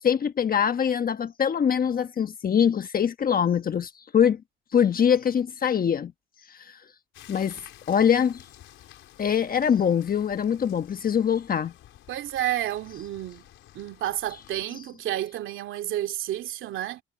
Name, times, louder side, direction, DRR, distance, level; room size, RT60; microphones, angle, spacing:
voice 1, 0.0-4.4 4.7-6.1 6.5-6.8 7.3-8.4 9.2-11.7, left 8 dB, 45° left, 1.2 m, -23 dB
sound 1, 7.1-14.7, left 13 dB, 85° left, 4.5 m, -51 dB
voice 2, 12.1-13.5 13.7-17.0, right 13 dB, 80° right, 2.7 m, -30 dB
cardioid pair, 90°, 20 cm